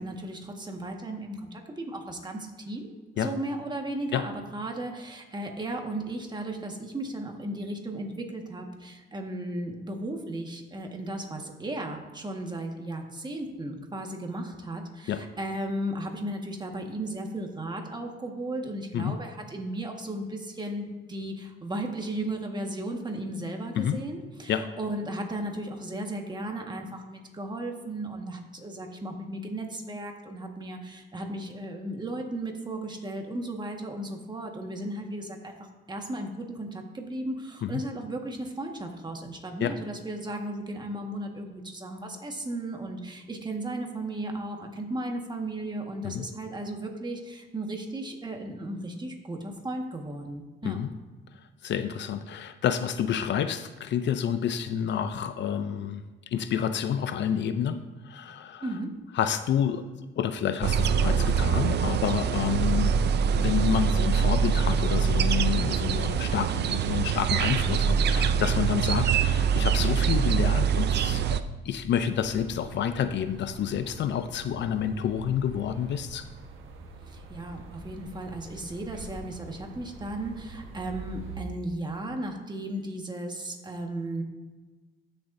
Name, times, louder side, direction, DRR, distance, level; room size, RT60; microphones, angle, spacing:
voice 1, 0.0-2.9 3.1-35.6 35.9-50.8 58.6-58.9 77.1-84.2, right 1 dB, 20° right, 2 dB, 1.6 m, -35 dB
voice 2, 51.6-58.7 59.1-76.3, left 8 dB, 65° left, 11 dB, 0.6 m, -29 dB
sound 1, 60.6-71.4, right 7 dB, 60° right, 0.5 m, -24 dB
sound 2, 72.0-81.4, right 3 dB, 80° right, 1.3 m, -45 dB
15.0 x 6.9 x 2.7 m, 1.3 s
cardioid pair, 90°, 20 cm